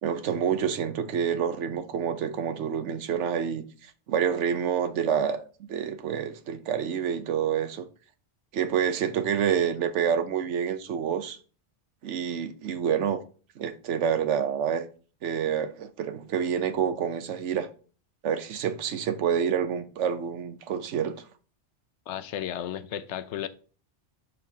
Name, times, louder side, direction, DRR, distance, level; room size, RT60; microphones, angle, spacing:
voice 1, 0.0-5.4 5.7-7.9 8.5-11.4 12.0-13.2 13.6-14.9 15.2-17.7 18.2-21.2, right 8 dB, 90° right, 1.1 m, -28 dB
voice 2, 22.1-23.5, left 10 dB, 80° left, 0.9 m, -33 dB
6.7 x 5.9 x 2.7 m
omnidirectional pair, 1.2 m